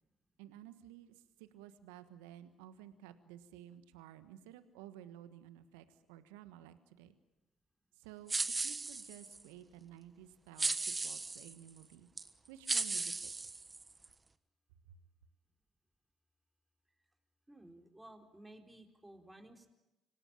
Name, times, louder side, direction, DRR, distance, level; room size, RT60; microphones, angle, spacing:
voice 1, 0.4-1.1 1.4-7.2 8.0-12.1 12.5-13.5, right 11 dB, 80° right, 12 dB, 1.3 m, -54 dB
sound 1, 8.3-9.4 10.6-11.5 12.2-12.3 12.7-14.1, right 3 dB, 25° right, 1.4 m, -36 dB
voice 2, 17.5-19.7, right 1 dB, 10° right, 4 dB, 4.1 m, -56 dB
26.0 x 17.5 x 8.7 m, 1.0 s
hypercardioid pair, 55°, 0 cm